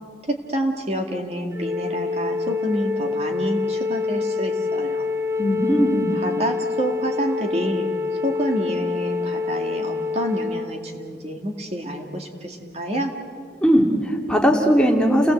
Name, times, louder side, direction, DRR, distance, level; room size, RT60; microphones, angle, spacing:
voice 1, 0.3-5.1 6.1-13.1, equal, 35° right, 3 dB, 2.2 m, -28 dB
Wind instrument woodwind instrument, 1.5-10.7, left 4 dB, 15° right, 0.8 m, -26 dB
voice 2, 5.4-6.2 13.6-15.3, equal, 5° left, 1 dB, 2.4 m, -18 dB
30.0 x 19.0 x 8.1 m, 2.3 s
head